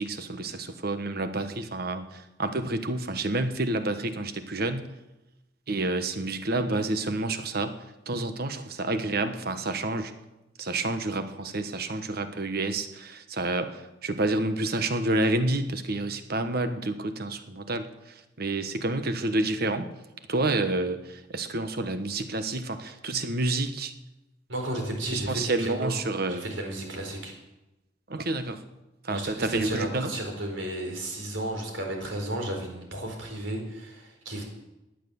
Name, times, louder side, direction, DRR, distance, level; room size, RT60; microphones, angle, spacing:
voice 1, 0.0-4.9 5.7-10.1 10.6-19.9 20.3-23.9 25.1-26.5 28.1-28.6 29.0-30.1, right 2 dB, 50° right, 9 dB, 1.2 m, -29 dB
voice 2, 24.5-25.9 26.3-27.3 29.1-34.4, right 1 dB, 70° right, 2 dB, 4.3 m, -33 dB
17.5 x 10.5 x 7.0 m, 0.98 s
head